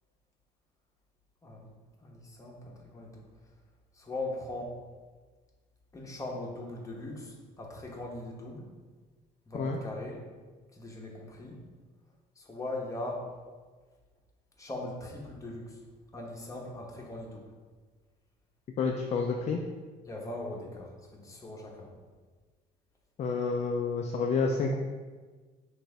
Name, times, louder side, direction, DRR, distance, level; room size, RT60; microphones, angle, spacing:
voice 1, 2.0-3.2 3.9-4.8 5.9-8.7 9.5-10.2 10.7-11.6 12.4-13.2 14.6-15.8 16.1-17.4 20.0-21.9, left 2 dB, 20° left, -1 dB, 1.0 m, -40 dB
voice 2, 18.8-19.6 23.2-24.7, left 4 dB, 45° left, 1 dB, 0.4 m, -29 dB
6.0 x 2.6 x 3.3 m, 1.4 s
cardioid pair, 110°, 17 cm